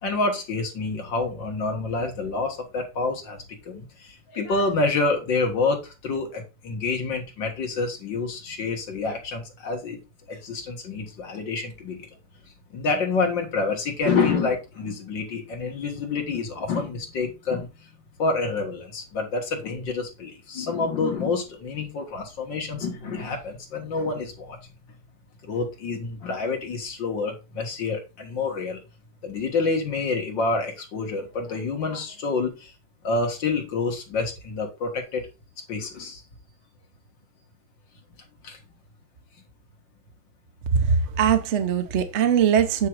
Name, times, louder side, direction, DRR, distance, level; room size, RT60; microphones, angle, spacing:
voice 1, 0.0-10.0 10.3-12.1 12.7-17.9 18.2-24.6 25.4-28.8 29.2-32.7 33.0-35.2 35.7-36.2 38.4-38.6, left 3 dB, 80° left, 2.4 m, -28 dB
voice 2, 40.7-42.9, right 7 dB, 50° right, 0.9 m, -21 dB
8.8 x 3.8 x 4.6 m
omnidirectional pair, 2.0 m